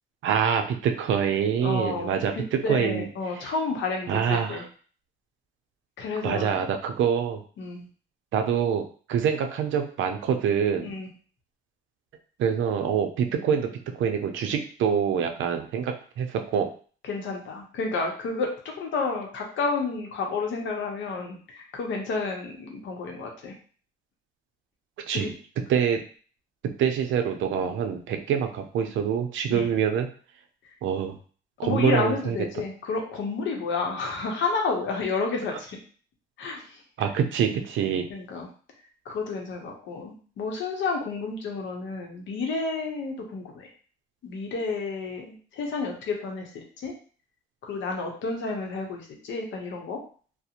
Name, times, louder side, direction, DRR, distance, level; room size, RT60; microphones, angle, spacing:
voice 1, 0.2-3.1 4.1-4.6 6.2-7.4 8.3-8.8 9.1-10.9 12.4-13.7 14.0-16.7 25.1-25.3 25.7-26.0 26.6-30.1 30.8-31.2 31.6-32.4 37.0-38.1, right 7 dB, 75° right, 5 dB, 0.5 m, -25 dB
voice 2, 1.6-4.7 6.0-6.7 7.6-7.9 10.8-11.1 17.0-23.5 25.1-25.3 29.5-29.7 31.6-35.8 36.4-36.8 38.1-38.5 39.1-43.7 44.2-46.9 47.6-50.0, left 4 dB, 70° left, 1 dB, 0.7 m, -31 dB
2.4 x 2.0 x 2.8 m, 0.42 s
cardioid pair, 90°, 20 cm